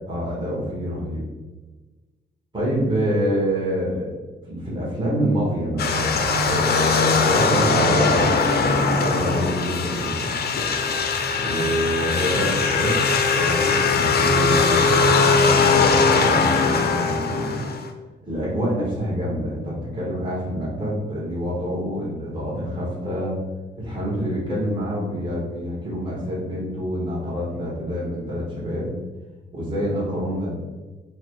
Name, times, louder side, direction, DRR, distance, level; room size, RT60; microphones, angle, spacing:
voice 1, 0.1-1.2 2.5-4.1 4.5-10.3 11.4-13.0 13.3-17.6 18.3-23.4 23.7-28.9 29.5-30.5, equal, 25° right, -7 dB, 1.3 m, -27 dB
sound 1, 5.8-17.9, left 4 dB, 60° left, 0.5 m, -20 dB
4.1 x 2.1 x 4.5 m, 1.3 s
wide cardioid pair, 125°, 19 cm